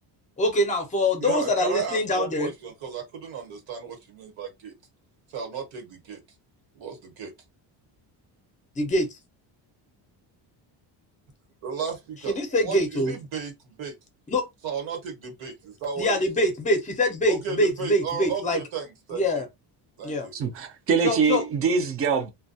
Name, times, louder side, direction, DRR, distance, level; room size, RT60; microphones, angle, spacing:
voice 1, 0.4-2.5 8.8-9.2 12.3-13.1 14.3-14.5 16.0-18.6 19.1-19.5 20.0-20.3 21.0-21.4, left 1 dB, 15° left, 0.5 m, -24 dB
voice 2, 1.2-4.7 5.3-6.2 6.7-7.3 11.6-13.5 13.8-13.9 14.6-16.2 17.3-19.4 20.0-20.3, right 6 dB, 80° right, 1.2 m, -34 dB
voice 3, 20.3-22.3, right 5 dB, 35° right, 0.4 m, -24 dB
2.2 x 2.2 x 2.6 m
cardioid pair, 155°, 46 cm